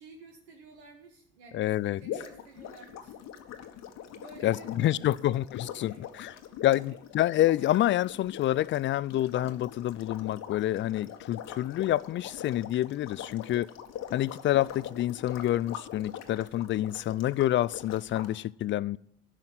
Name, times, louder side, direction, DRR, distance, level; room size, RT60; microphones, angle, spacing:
voice 1, 0.0-3.2 3.6-3.7 4.1-5.4 5.9-6.3, right 3 dB, 80° right, 1.5 m, -52 dB
voice 2, 1.5-2.0 4.4-6.4 6.6-13.7 14.1-19.0, left 13 dB, 40° left, 0.4 m, -28 dB
sound 1, 2.0-18.3, left 10 dB, 55° left, 1.3 m, -43 dB
11.0 x 5.8 x 7.9 m
hypercardioid pair, 65°, 31 cm